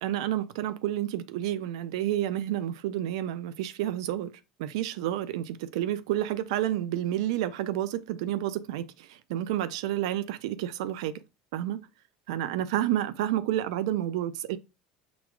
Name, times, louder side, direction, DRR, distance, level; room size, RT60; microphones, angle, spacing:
voice 1, 0.0-11.2 11.5-11.9 12.3-14.6, right 12 dB, 85° right, 0.3 m, -30 dB
5.9 x 2.3 x 2.3 m
supercardioid pair, 110°, 3 cm